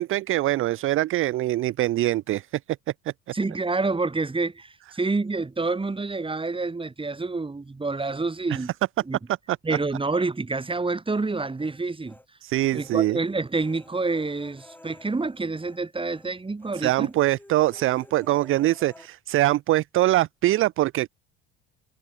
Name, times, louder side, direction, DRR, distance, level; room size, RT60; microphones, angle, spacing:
voice 1, 0.0-2.5 9.5-9.6 12.4-13.2 16.7-21.1, right 15 dB, 40° right, 0.6 m, -23 dB
voice 2, 3.3-8.7 9.1-9.2 9.6-12.2 12.7-17.1, right 3 dB, 15° right, 3.0 m, -28 dB
Human voice, 11.1-12.3 12.6-15.8 16.1-16.3 16.6-19.1, left 1 dB, 5° left, 4.0 m, -51 dB
hypercardioid pair, 65°, 34 cm